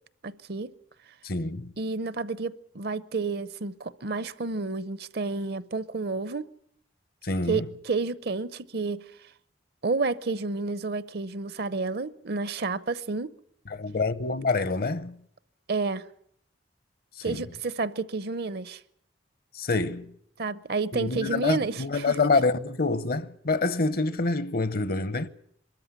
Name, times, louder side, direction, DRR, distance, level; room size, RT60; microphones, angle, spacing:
voice 1, 0.2-0.7 1.8-6.4 7.5-9.0 9.8-13.3 15.7-16.0 17.2-18.8 20.4-22.3, right 3 dB, 60° right, 0.8 m, -30 dB
voice 2, 1.2-1.7 7.2-7.6 13.7-15.2 17.2-17.4 19.5-20.1 20.9-25.3, left 3 dB, 55° left, 0.9 m, -27 dB
23.0 x 13.5 x 10.0 m
head